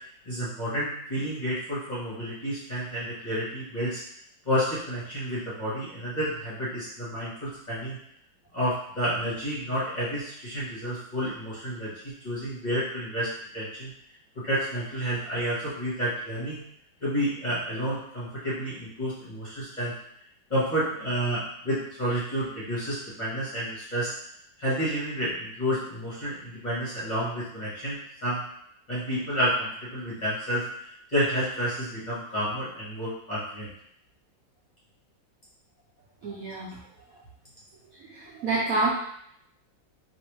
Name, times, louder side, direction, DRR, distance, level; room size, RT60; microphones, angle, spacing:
voice 1, 0.2-4.0 4.4-8.0 8.5-13.3 13.5-13.9 14.4-16.6 17.0-19.9 20.5-24.1 24.6-28.4 28.9-33.7, equal, 30° left, -10 dB, 1.1 m, -30 dB
voice 2, 36.2-36.8 38.0-38.9, right 2 dB, 70° right, -5 dB, 0.9 m, -28 dB
3.2 x 2.9 x 3.0 m, 0.69 s
omnidirectional pair, 2.0 m